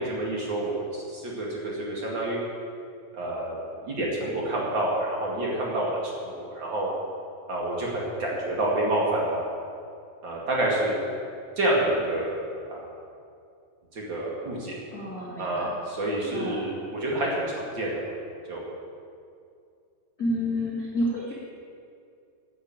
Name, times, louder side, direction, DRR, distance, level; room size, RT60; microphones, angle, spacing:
voice 1, 0.0-2.4 3.1-3.5 3.9-6.9 7.5-9.4 10.2-11.0 11.6-12.4 12.7-12.8 13.9-14.8 15.4-18.0 18.5-18.6, right 1 dB, 45° right, -3 dB, 1.5 m, -28 dB
voice 2, 14.9-15.7 16.3-16.6 20.2-21.3, left 1 dB, 70° left, -7 dB, 0.8 m, -29 dB
10.5 x 10.0 x 8.9 m, 2.4 s
omnidirectional pair, 5.7 m